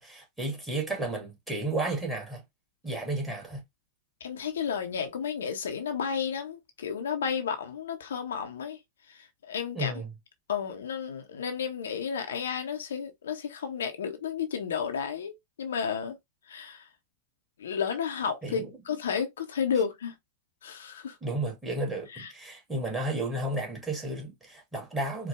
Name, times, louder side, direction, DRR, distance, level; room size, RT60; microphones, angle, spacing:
voice 1, 0.0-2.4 2.8-3.6 9.7-10.1 18.4-18.8 21.2-25.3, right 2 dB, 10° right, 1.9 m, -33 dB
voice 2, 4.2-8.8 9.4-9.9 10.5-16.2 16.5-16.8 17.6-20.1 20.6-21.1 22.1-22.3, left 7 dB, 65° left, 0.7 m, -32 dB
4.5 x 2.2 x 3.4 m
figure-of-eight pair, 90°, 0 cm